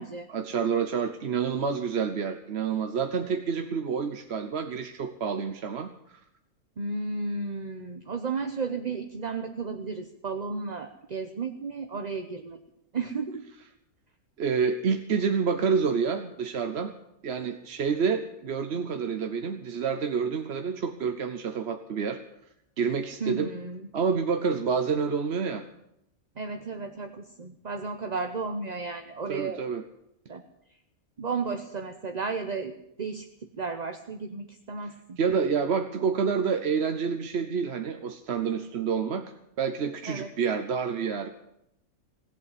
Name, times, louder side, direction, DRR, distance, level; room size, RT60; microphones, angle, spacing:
voice 1, 0.3-6.2 14.4-16.9 17.2-22.2 22.8-23.5 23.9-25.6 29.3-29.8 35.2-39.2 39.6-41.3, right 6 dB, 50° right, 7 dB, 1.0 m, -28 dB
voice 2, 6.8-12.6 12.9-13.4 23.2-23.8 26.4-29.6 30.3-30.4 31.2-32.7 33.0-33.2 33.6-35.2 40.1-40.3, right 4 dB, 35° right, 6 dB, 0.9 m, -33 dB
17.0 x 8.3 x 9.8 m, 0.80 s
omnidirectional pair, 1.5 m